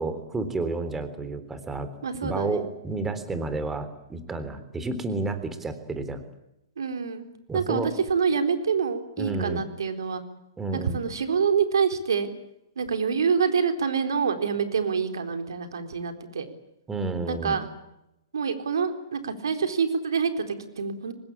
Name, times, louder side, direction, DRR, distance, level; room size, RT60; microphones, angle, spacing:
voice 1, 0.0-1.9 2.2-6.2 7.5-7.9 9.2-9.6 10.6-11.0 16.9-17.6, right 3 dB, 10° right, 11 dB, 3.6 m, -31 dB
voice 2, 2.0-2.6 6.8-7.3 7.5-10.2 10.7-12.3 12.8-16.5 17.3-17.7 18.3-21.1, right 6 dB, 75° right, 8 dB, 3.8 m, -26 dB
25.0 x 20.5 x 8.7 m, 0.87 s
hypercardioid pair, 130°, 2 cm